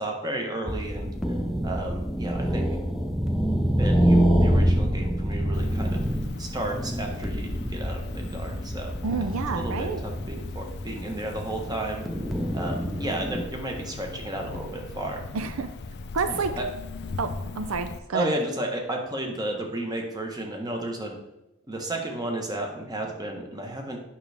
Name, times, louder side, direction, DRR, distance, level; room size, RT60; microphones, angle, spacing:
voice 1, 0.0-1.4 1.6-2.7 3.8-6.0 6.4-8.9 9.5-12.1 12.5-15.2 16.3-16.7 18.1-21.2 21.7-24.0, right 1 dB, 20° right, 2 dB, 1.1 m, -33 dB
sound 1, 0.7-13.4, equal, ahead, 0.6 m, -26 dB
Cricket, 5.5-18.0, left 3 dB, 50° left, 0.5 m, -39 dB
voice 2, 9.0-10.0 15.3-15.7 16.1-16.5 17.2-18.3, right 4 dB, 75° right, 10 dB, 0.5 m, -29 dB
8.9 x 6.2 x 3.4 m, 0.91 s
head